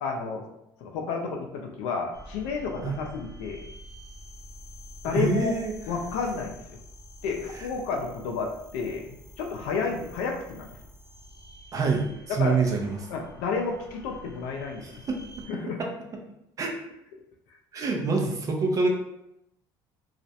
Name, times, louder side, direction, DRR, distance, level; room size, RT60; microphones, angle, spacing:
voice 1, 0.0-0.4 0.8-3.7 5.0-5.5 5.9-6.8 7.2-10.7 12.4-12.6 13.1-15.0 15.5-15.8, left 5 dB, 85° left, 2 dB, 0.4 m, -31 dB
sound 1, 2.1-15.5, equal, 35° left, 0.6 m, -48 dB
voice 2, 5.0-5.7 7.6-7.7 11.7-13.0 14.8-15.2 15.8-15.9 16.6-16.7 17.7-18.9, right 4 dB, 35° right, 2 dB, 0.5 m, -26 dB
2.4 x 2.0 x 2.7 m, 0.82 s
cardioid pair, 110°, 10 cm